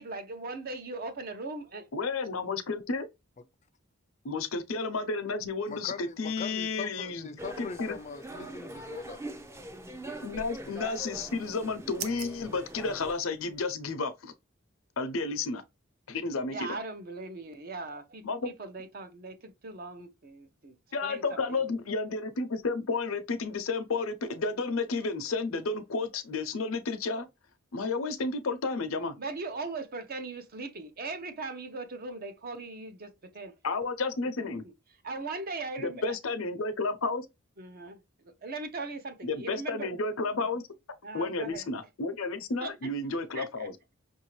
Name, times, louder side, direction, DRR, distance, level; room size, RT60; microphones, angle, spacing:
voice 1, 0.0-1.9 10.1-10.2 16.5-20.7 21.0-21.2 21.5-21.6 29.2-33.5 35.0-36.1 37.6-38.0 38.4-39.9 41.0-41.7 42.6-42.7 43.3-43.7, right 3 dB, 45° right, 0.7 m, -39 dB
voice 2, 1.9-3.1 4.2-7.3 7.6-8.0 10.2-14.3 15.0-15.6 16.1-16.8 18.2-18.5 20.9-27.3 27.7-29.1 33.6-34.6 35.8-37.3 39.2-40.6 41.1-43.7, left 3 dB, 85° left, 0.7 m, -32 dB
voice 3, 5.7-9.2, left 5 dB, 35° left, 0.5 m, -41 dB
sound 1, 7.4-13.1, right 1 dB, 15° right, 0.5 m, -43 dB
sound 2, 10.9-13.7, right 9 dB, 85° right, 0.6 m, -46 dB
5.8 x 2.7 x 3.1 m
head